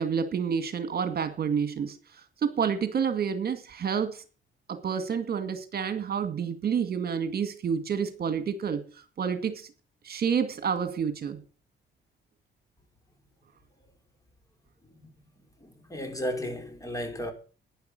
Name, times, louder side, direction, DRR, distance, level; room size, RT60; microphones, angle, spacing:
voice 1, 0.0-2.0 2.4-4.2 4.7-8.8 9.2-9.7 10.0-11.4, right 7 dB, 50° right, 2.1 m, -29 dB
voice 2, 15.6-17.3, equal, 15° left, 4.6 m, -34 dB
11.5 x 10.0 x 7.7 m
cardioid pair, 90°, 20 cm